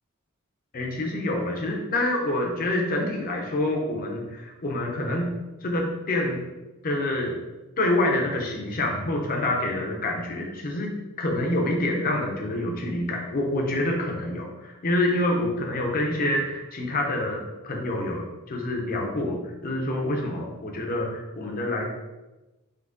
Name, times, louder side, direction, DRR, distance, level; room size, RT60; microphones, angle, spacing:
voice 1, 0.7-5.3 5.6-6.4 6.8-7.3 7.8-21.9, left 1 dB, 40° left, 0 dB, 0.7 m, -27 dB
3.9 x 2.9 x 3.6 m, 1.1 s
head